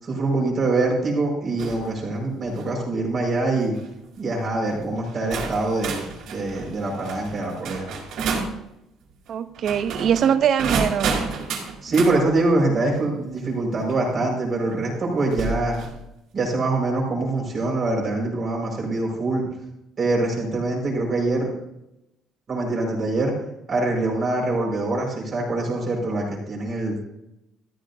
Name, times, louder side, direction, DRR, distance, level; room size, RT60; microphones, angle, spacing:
voice 1, 0.0-3.7 4.2-7.9 11.8-15.8 16.3-19.5 20.0-21.5 22.5-23.3 23.7-27.0, right 2 dB, 35° right, -2 dB, 5.0 m, -24 dB
sound 1, 1.6-1.9 2.4-2.7 3.6-3.8 4.7-4.8 5.3-8.6 9.5-12.2 13.9-14.0 15.3-16.0, right 4 dB, 70° right, 3.8 m, -30 dB
voice 2, 9.3-11.1, right 8 dB, 50° right, 13 dB, 0.7 m, -22 dB
14.5 x 13.5 x 2.7 m, 0.86 s
cardioid pair, 145°, 0 cm